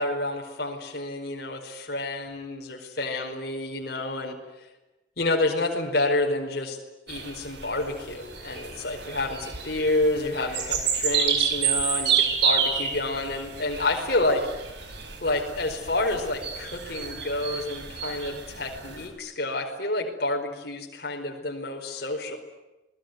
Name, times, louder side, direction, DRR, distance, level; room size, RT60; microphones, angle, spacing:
voice 1, 0.0-4.4 5.2-6.8 7.1-14.4 15.2-22.4, left 2 dB, 55° left, 1 dB, 4.8 m, -29 dB
sound 1, 7.1-19.0, right 7 dB, 60° right, 5.1 m, -29 dB
28.5 x 20.5 x 9.4 m, 1.0 s
head